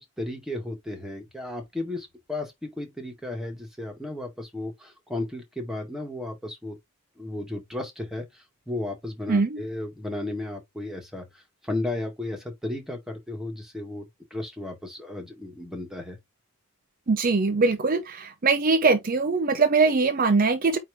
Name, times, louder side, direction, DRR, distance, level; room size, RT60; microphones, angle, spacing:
voice 1, 0.2-6.8 7.2-8.3 8.7-11.3 11.6-14.1 14.3-16.2, left 2 dB, ahead, 1.8 m, -34 dB
voice 2, 9.3-9.6 17.1-20.8, right 4 dB, 40° right, 0.6 m, -22 dB
8.8 x 3.1 x 3.5 m
head